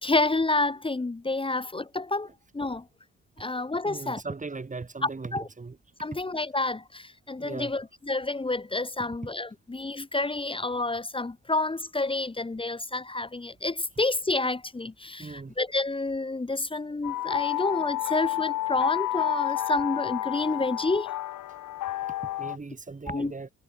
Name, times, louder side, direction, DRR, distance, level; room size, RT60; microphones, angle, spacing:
voice 1, 0.0-2.3 2.5-2.9 3.4-4.2 5.0-5.5 6.0-21.1 23.1-23.3, left 2 dB, 15° left, 1.7 m, -29 dB
voice 2, 3.8-5.8 7.4-7.7 15.2-15.5 22.4-23.5, right 4 dB, 25° right, 4.9 m, -38 dB
sound 1, 17.0-22.6, left 14 dB, 85° left, 6.3 m, -30 dB
cardioid pair, 90°, 30 cm